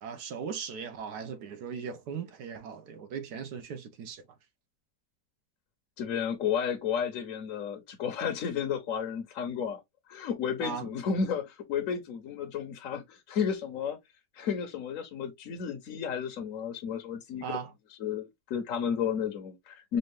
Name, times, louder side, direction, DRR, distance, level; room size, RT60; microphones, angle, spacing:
voice 1, 0.0-4.2 10.6-10.9 17.4-17.7, right 6 dB, 70° right, 1.2 m, -38 dB
voice 2, 6.0-9.8 10.1-14.0 14.3-17.5 18.0-20.0, left 7 dB, 60° left, 1.0 m, -32 dB
5.3 x 2.4 x 3.1 m
omnidirectional pair, 1.9 m